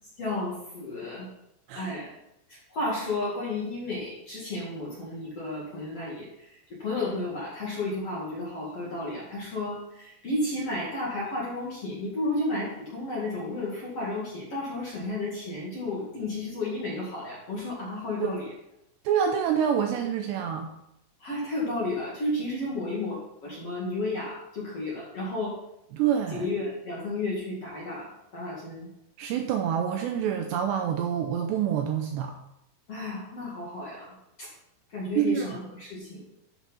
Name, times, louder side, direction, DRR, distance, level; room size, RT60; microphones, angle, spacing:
voice 1, 0.2-1.3 1.7-2.1 2.5-18.5 21.2-25.6 26.3-28.9 32.9-34.5 34.9-36.3, left 2 dB, 45° left, -6 dB, 2.2 m, -32 dB
voice 2, 19.0-20.7 25.9-26.4 29.2-32.3 35.2-35.5, right 8 dB, 85° right, 4 dB, 2.6 m, -27 dB
12.0 x 6.1 x 4.2 m, 0.82 s
omnidirectional pair, 5.5 m